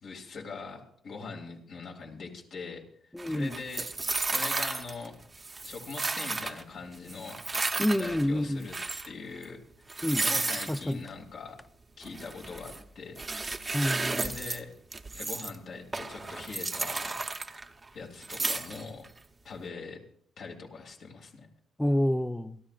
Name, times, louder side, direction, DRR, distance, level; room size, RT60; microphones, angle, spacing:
voice 1, 0.0-2.8 3.3-3.8 4.1-5.1 5.6-7.4 8.0-8.7 9.0-9.6 10.2-11.6 12.0-13.2 14.1-14.7 15.1-17.2 17.9-19.1 19.4-20.0 20.4-21.5, left 4 dB, 65° left, 2.8 m, -42 dB
voice 2, 3.1-3.6 7.8-8.7 10.0-10.3 10.7-11.1 13.7-14.2 21.8-22.6, left 1 dB, 5° left, 0.7 m, -28 dB
sound 1, 3.2-5.1 5.3-6.6 7.1-8.3 8.6-9.1 9.4-9.5 9.9-10.8 12.0-12.8 13.2-14.6 14.9-15.6 15.9-17.9 18.2-19.1, right 3 dB, 25° right, 1.0 m, -33 dB
29.0 x 11.5 x 2.5 m
cardioid pair, 90°, 0 cm